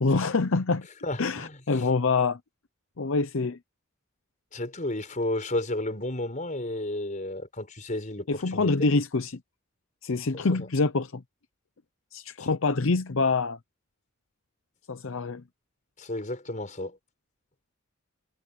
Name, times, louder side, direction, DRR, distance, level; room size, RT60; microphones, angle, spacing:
voice 1, 0.0-0.9 1.2-2.4 3.0-3.6 8.3-9.4 10.0-11.2 12.1-13.6 14.9-15.4, left 3 dB, 70° left, 0.7 m, -25 dB
voice 2, 1.0-1.8 4.5-8.7 10.3-10.6 12.4-12.5 16.0-17.0, left 1 dB, 40° left, 5.2 m, -32 dB
head